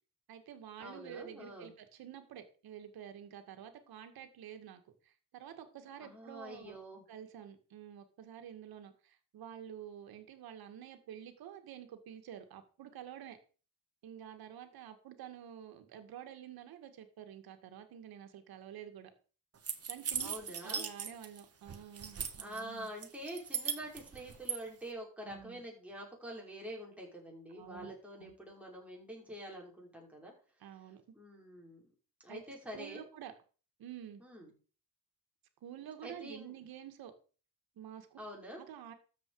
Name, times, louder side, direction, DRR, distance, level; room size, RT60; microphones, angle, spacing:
voice 1, 0.3-6.8 7.1-13.4 14.0-19.1 19.9-20.4 20.6-22.9 25.2-25.6 27.5-27.9 28.2-28.3 30.6-31.0 32.3-33.3 33.8-34.2 35.6-37.1 37.8-38.2 38.6-38.9, right 9 dB, 85° right, 7 dB, 2.1 m, -49 dB
voice 2, 0.8-1.7 6.0-7.0 20.2-20.9 22.4-30.3 31.1-31.9 32.2-33.0 34.2-34.5 36.0-36.5 38.2-38.6, right 1 dB, 5° right, -2 dB, 5.2 m, -46 dB
sound 1, 19.6-21.4 21.7-22.6 23.0-24.6, right 7 dB, 40° right, 1.7 m, -38 dB
13.0 x 7.7 x 4.8 m, 0.38 s
cardioid pair, 120°, 36 cm